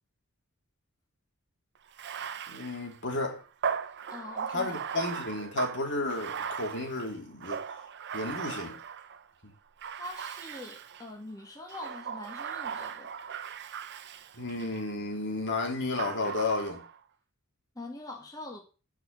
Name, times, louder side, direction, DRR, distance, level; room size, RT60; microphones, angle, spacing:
Bathtub (filling or washing), 1.9-9.3 9.8-11.1 11.7-14.8 16.0-17.0, right 7 dB, 55° right, 0.7 m, -38 dB
voice 1, 2.5-3.4 4.5-7.6 8.1-8.8 14.3-16.8, left 2 dB, 55° left, 3.1 m, -32 dB
voice 2, 4.1-4.7 10.0-13.2 17.8-18.6, left 2 dB, 15° left, 1.9 m, -43 dB
11.0 x 5.1 x 6.6 m
head